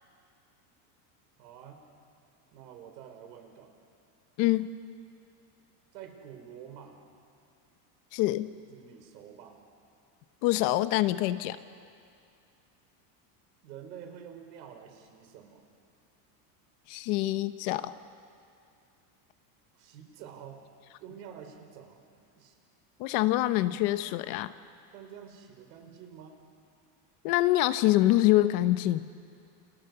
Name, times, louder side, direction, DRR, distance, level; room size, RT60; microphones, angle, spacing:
voice 1, 1.4-1.8 2.5-3.7 5.9-7.0 8.7-9.6 13.6-15.6 19.7-20.6 21.0-22.0 22.3-22.6 24.9-26.4, right 8 dB, 90° right, 5 dB, 5.0 m, -48 dB
voice 2, 4.4-4.7 8.1-8.5 10.4-11.6 16.9-17.9 23.0-24.5 27.2-29.1, left 16 dB, 45° left, 12 dB, 1.0 m, -25 dB
30.0 x 28.5 x 6.9 m, 2.5 s
cardioid pair, 170°, 48 cm